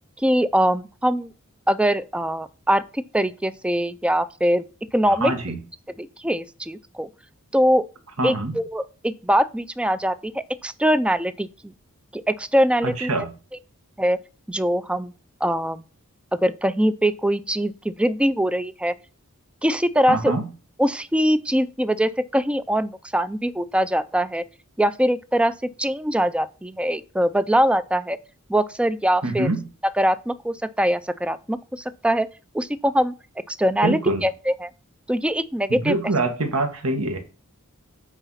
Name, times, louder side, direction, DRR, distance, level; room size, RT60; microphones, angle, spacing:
voice 1, 0.2-1.3 1.7-4.6 4.9-5.3 6.0-7.1 7.5-7.8 8.2-10.3 10.6-11.5 12.1-13.1 14.0-14.2 14.5-15.1 15.4-15.8 16.4-18.9 19.6-20.3 20.8-24.4 24.8-25.5 25.8-28.2 28.5-29.5 30.0-32.3 32.5-33.1 33.5-34.7 35.1-36.0, equal, 5° right, 0.4 m, -22 dB
voice 2, 5.1-5.6 8.2-8.6 12.8-13.3 20.1-20.5 29.2-29.6 33.8-34.3 35.7-37.2, right 2 dB, 80° right, 1.9 m, -25 dB
9.2 x 4.0 x 5.7 m
head